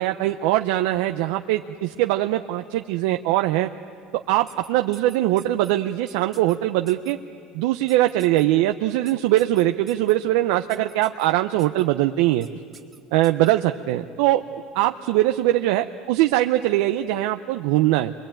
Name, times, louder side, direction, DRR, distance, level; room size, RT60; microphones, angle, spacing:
voice 1, 0.0-3.7 4.1-7.2 7.5-12.5 13.1-14.4 14.7-18.1, right 15 dB, 80° right, 6 dB, 0.7 m, -21 dB
sound 1, 4.5-5.7 6.1-6.6 6.9-7.1 7.9-8.4 9.1-10.1 10.7-11.3 11.6-11.8 12.4-12.5 12.7-13.5, right 5 dB, 20° right, 2.1 m, -47 dB
28.0 x 23.0 x 9.0 m, 2.3 s
cardioid pair, 130°, 0 cm